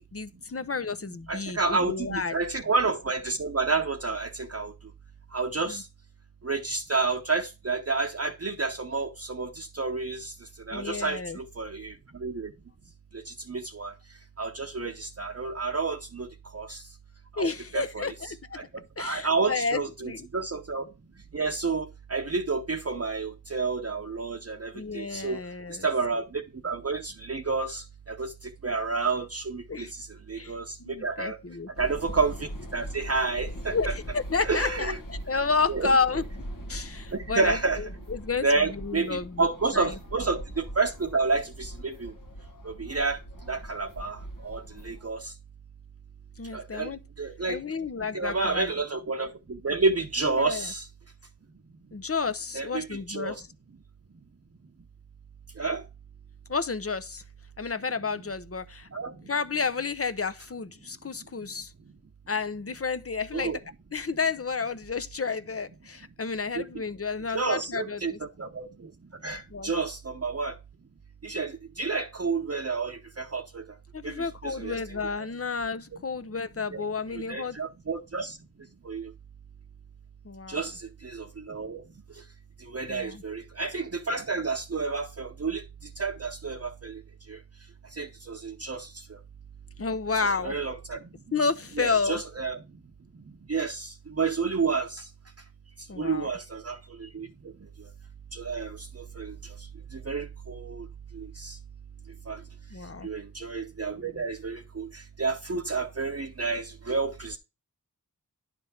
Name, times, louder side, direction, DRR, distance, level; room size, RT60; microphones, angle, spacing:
voice 1, 0.0-2.3 5.7-5.8 10.7-11.4 17.4-18.1 18.5-18.6 19.0-20.3 24.7-25.9 29.7-29.9 30.3-31.7 33.7-36.2 36.7-39.5 39.7-39.9 46.4-47.0 47.5-48.7 50.2-50.7 51.9-53.3 56.5-57.2 57.6-58.9 59.3-61.7 62.3-63.6 63.9-68.2 69.5-69.7 73.9-77.6 80.2-80.6 82.9-83.2 89.8-90.5 91.3-92.2 95.9-96.3 102.7-103.1, left 4 dB, 40° left, 0.7 m, -31 dB
voice 2, 1.3-4.7 5.3-5.9 6.4-10.3 10.7-12.5 13.1-13.9 14.4-16.8 17.3-18.1 18.5-18.6 19.0-20.9 21.3-25.4 25.8-28.3 28.6-31.4 31.8-33.8 34.4-35.0 35.7-35.9 37.1-37.8 38.4-42.1 42.6-43.2 43.5-45.3 46.5-46.9 47.2-47.6 48.1-50.9 52.5-53.4 55.6-55.8 58.9-59.2 63.3-63.6 66.5-66.6 67.3-68.9 69.2-70.6 71.2-73.6 74.0-75.0 76.7-76.8 77.1-78.4 78.8-79.1 80.5-81.8 82.7-85.6 86.0-87.0 87.3-87.4 87.9-88.9 90.2-91.0 91.8-92.6 93.5-95.1 96.0-97.3 98.3-99.5 99.9-100.9 101.1-101.6 102.3-102.4 103.0-107.4, right 4 dB, 40° right, 0.8 m, -30 dB
sound 1, 31.8-45.0, right 1 dB, 65° left, 1.4 m, -40 dB
10.5 x 3.5 x 5.7 m
wide cardioid pair, 45°, 36 cm